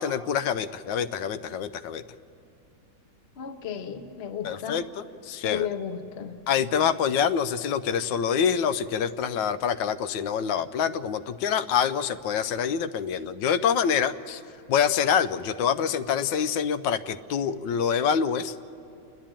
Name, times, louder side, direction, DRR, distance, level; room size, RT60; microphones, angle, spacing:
voice 1, 0.0-2.0 4.4-5.7 6.5-14.4 14.7-18.5, left 7 dB, 90° left, 11 dB, 1.3 m, -26 dB
voice 2, 3.4-4.8 5.4-6.3, left 8 dB, 50° left, 7 dB, 0.8 m, -33 dB
29.0 x 10.5 x 8.8 m, 2.6 s
omnidirectional pair, 1.9 m